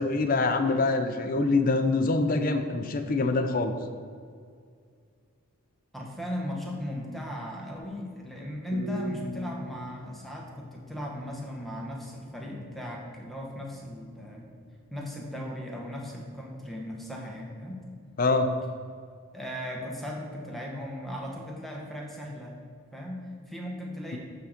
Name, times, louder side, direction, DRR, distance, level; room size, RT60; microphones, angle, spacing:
voice 1, 0.0-3.7 18.2-18.5, left 3 dB, 40° left, 7 dB, 0.5 m, -25 dB
voice 2, 5.9-14.5 14.9-17.8 19.3-22.5 22.9-24.2, equal, ahead, -2 dB, 1.0 m, -37 dB
sound 1, 8.7-11.7, equal, 30° right, 1.7 m, -40 dB
8.3 x 3.8 x 5.8 m, 2.2 s
head